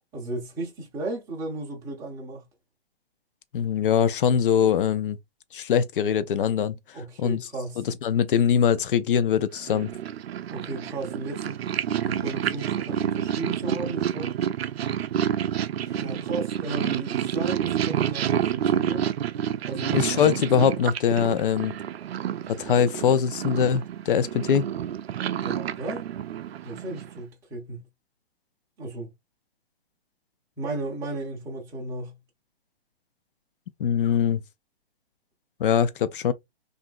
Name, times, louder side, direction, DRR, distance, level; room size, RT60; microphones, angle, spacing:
voice 1, 0.1-2.4 6.9-7.8 10.5-11.6 12.0-14.3 15.9-19.1 19.7-20.1 25.4-26.1 26.6-27.8 28.8-29.1 30.6-32.1, right 2 dB, 10° right, 0.6 m, -35 dB
voice 2, 3.5-5.2 5.5-6.8 7.2-7.4 7.8-9.9 19.9-21.8 22.5-24.7 33.8-34.4 35.6-36.3, left 8 dB, 55° left, 0.5 m, -22 dB
Purr, 9.6-27.2, right 10 dB, 70° right, 0.5 m, -29 dB
2.9 x 2.5 x 2.4 m
hypercardioid pair, 145°, 32 cm